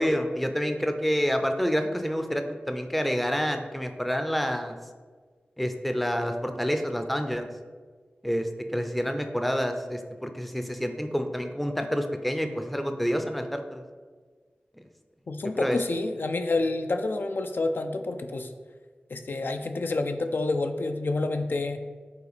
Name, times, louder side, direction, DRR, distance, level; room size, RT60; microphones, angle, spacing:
voice 1, 0.0-4.8 5.6-7.5 8.2-13.8 15.6-15.8, equal, ahead, 6 dB, 0.5 m, -28 dB
voice 2, 15.3-18.5 19.1-21.8, left 2 dB, 65° left, 6 dB, 0.4 m, -28 dB
5.7 x 4.2 x 4.1 m, 1.5 s
wide cardioid pair, 85°, 4 cm